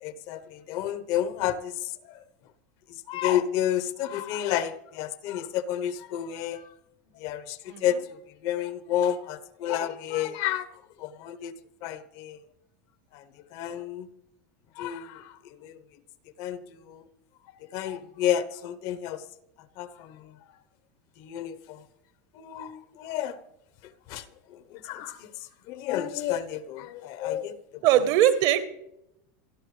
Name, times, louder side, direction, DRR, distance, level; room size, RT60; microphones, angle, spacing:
voice 1, 0.0-2.2 3.1-6.7 7.1-8.0 8.4-10.7 11.0-11.5 11.8-12.4 13.1-13.2 13.5-14.1 14.8-15.8 16.4-17.1 17.6-19.2 19.8-20.3 21.2-21.8 22.3-23.4 24.1-27.8, left 11 dB, 55° left, 1.0 m, -31 dB
voice 2, 7.7-8.0 27.8-28.7, right 11 dB, 50° right, 1.2 m, -21 dB
27.5 x 11.5 x 3.3 m
supercardioid pair, 150°, 10 cm